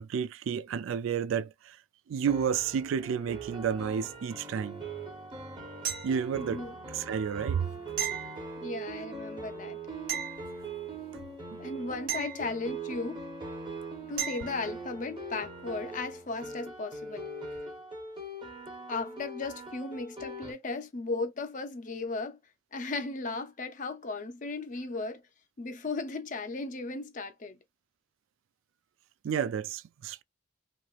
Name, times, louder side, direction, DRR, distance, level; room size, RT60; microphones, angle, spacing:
voice 1, 0.0-1.8 2.1-4.8 6.0-6.6 6.9-7.7 11.1-11.2 11.5-11.6 29.2-30.2, right 7 dB, 85° right, 0.3 m, -31 dB
sound 1, 2.3-20.5, right 2 dB, 25° right, 0.9 m, -42 dB
sound 2, 5.8-6.6 8.0-9.0 10.1-11.1 12.1-13.1 14.2-14.8 17.5-17.6, right 9 dB, 45° right, 1.1 m, -37 dB
voice 2, 6.4-6.7 8.6-9.8 11.6-13.2 14.1-17.3 18.9-22.4 22.7-25.2 25.6-27.6, left 3 dB, 40° left, 0.5 m, -36 dB
3.0 x 2.9 x 2.4 m
head